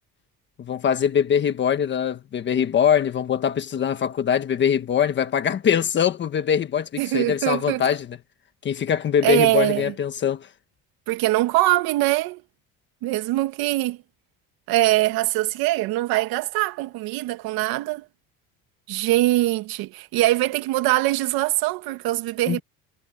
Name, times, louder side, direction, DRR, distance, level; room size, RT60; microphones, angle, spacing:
voice 1, 0.6-8.2 8.6-10.5 22.5-22.6, left 8 dB, 30° left, 1.3 m, -22 dB
voice 2, 7.0-7.8 9.2-9.9 11.1-12.4 13.0-14.0 14.7-18.0 18.9-22.6, right 17 dB, 80° right, 2.0 m, -22 dB
cardioid pair, 175°, 36 cm